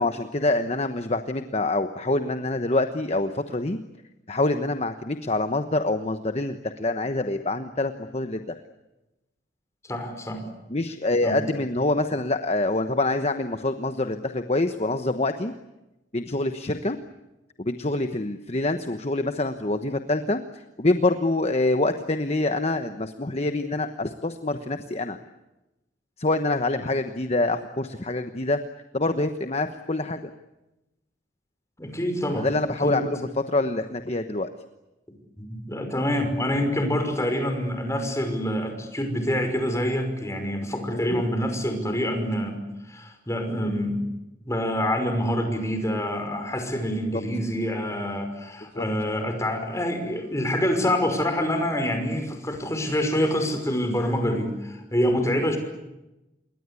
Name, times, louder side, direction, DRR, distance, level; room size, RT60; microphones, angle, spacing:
voice 1, 0.0-3.8 4.3-8.6 10.7-15.5 16.1-17.0 17.6-25.2 26.2-28.6 28.9-30.2 32.3-34.5 40.9-41.2 47.1-47.2 48.7-48.9, left 2 dB, 35° left, 8 dB, 1.1 m, -26 dB
voice 2, 9.8-10.5 11.2-11.4 31.8-32.5 32.8-33.0 35.1-44.0 44.5-55.6, equal, 15° left, 6 dB, 5.6 m, -26 dB
28.0 x 22.5 x 8.4 m, 0.95 s
head